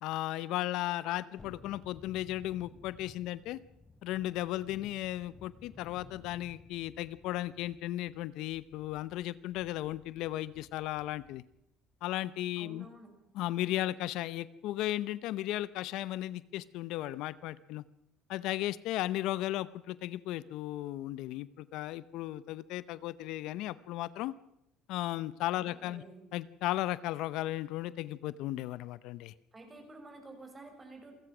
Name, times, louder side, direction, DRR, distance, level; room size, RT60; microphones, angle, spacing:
voice 1, 0.0-3.6 4.0-11.4 12.0-12.9 13.3-17.8 18.3-24.3 24.9-26.0 26.3-29.3, left 15 dB, 75° left, 17 dB, 0.7 m, -35 dB
Thunderstorm, 1.4-11.6 11.9-12.0, left 3 dB, 25° left, 3.1 m, -56 dB
voice 2, 12.6-13.1 25.5-26.2 29.5-31.1, right 2 dB, 25° right, 5 dB, 6.4 m, -50 dB
28.0 x 15.5 x 6.1 m, 0.83 s
supercardioid pair, 95°, 0 cm